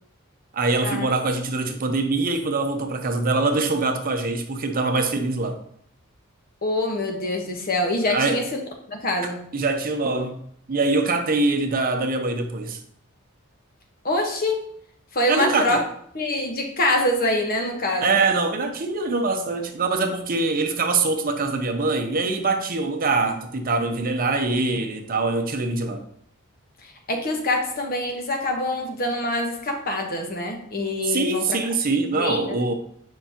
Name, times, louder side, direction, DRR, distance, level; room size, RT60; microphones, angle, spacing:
voice 1, 0.5-5.6 8.1-8.4 9.5-10.4 10.7-12.8 15.3-15.8 18.0-26.0 31.0-32.7, right 3 dB, 45° right, 0.7 m, -23 dB
voice 2, 6.6-9.4 14.0-14.7 15.1-15.8 16.1-18.2 23.2-23.3 26.8-31.7 32.1-32.7, left 1 dB, 45° left, 1.2 m, -25 dB
7.8 x 5.4 x 2.9 m
head